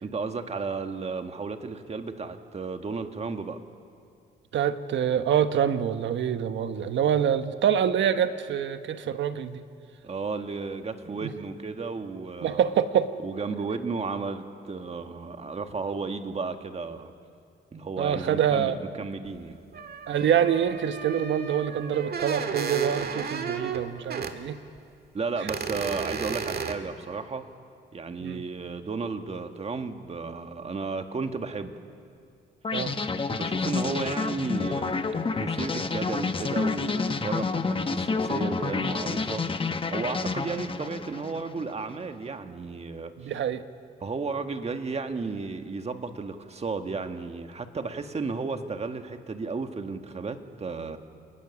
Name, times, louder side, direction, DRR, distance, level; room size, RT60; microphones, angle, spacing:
voice 1, 0.0-3.6 10.0-12.7 13.2-17.1 17.7-19.6 25.1-27.4 27.9-31.8 33.3-35.0 35.4-43.3 44.0-51.0, right 4 dB, 30° right, 7 dB, 1.7 m, -33 dB
voice 2, 4.5-9.6 11.2-11.3 12.4-13.1 18.0-18.8 20.1-24.6 25.4-25.5 28.2-28.4 32.7-32.9 43.2-43.6, right 9 dB, 70° right, 10 dB, 1.3 m, -26 dB
sound 1, 19.3-19.4 19.7-24.3 24.8-24.9 25.5-26.7, right 6 dB, 50° right, 1.9 m, -33 dB
sound 2, 32.6-41.7, left 4 dB, 25° left, 1.2 m, -29 dB
27.5 x 19.5 x 7.2 m, 2.3 s
cardioid pair, 90°, 20 cm